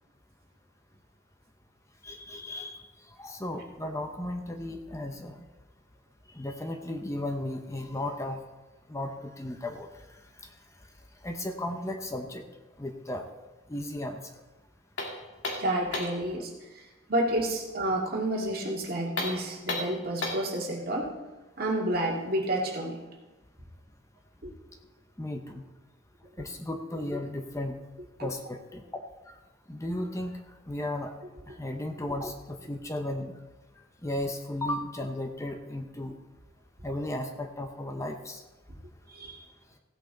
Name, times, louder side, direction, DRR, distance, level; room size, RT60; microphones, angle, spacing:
voice 1, 2.0-2.9 3.2-5.4 6.3-8.4 8.9-9.9 11.2-12.4 12.8-13.3 13.7-14.2 25.2-25.6 26.4-27.8 28.2-29.0 29.7-31.1 31.5-33.3 34.0-36.2 36.8-38.4, left 1 dB, 15° left, 5 dB, 0.7 m, -35 dB
sound 1, 15.0-16.3 19.1-20.5, left 2 dB, 65° left, 2.2 m, -33 dB
voice 2, 15.6-21.1 21.6-23.0 24.4-24.5 28.2-28.3 31.5-31.6 39.1-39.5, right 1 dB, 50° right, -1 dB, 2.1 m, -30 dB
15.5 x 8.5 x 3.9 m, 1.1 s
head